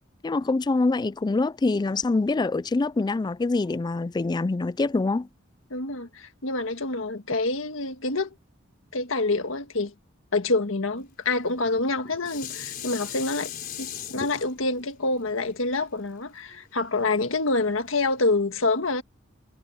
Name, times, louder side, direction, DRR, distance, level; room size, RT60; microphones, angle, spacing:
voice 1, 0.2-5.3, left 3 dB, 20° left, 0.3 m, -25 dB
voice 2, 5.7-8.3 8.9-9.9 10.3-13.5 13.8-19.0, left 3 dB, 75° left, 1.7 m, -27 dB
Dishes pots and pans, 11.6-16.9 17.5-17.6, left 8 dB, 45° left, 4.7 m, -39 dB
head